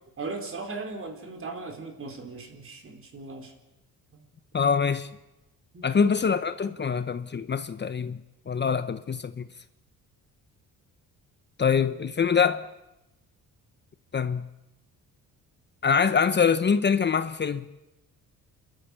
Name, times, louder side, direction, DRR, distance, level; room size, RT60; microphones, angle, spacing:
voice 1, 0.2-3.5 4.1-4.3 5.7-5.8, right 3 dB, 40° right, 4.4 m, -38 dB
voice 2, 4.5-5.1 5.8-8.2 8.5-9.4 11.6-12.6 14.1-14.5 15.8-17.6, left 6 dB, 30° left, 0.9 m, -24 dB
29.0 x 13.0 x 8.5 m
cardioid pair, 95°, 34 cm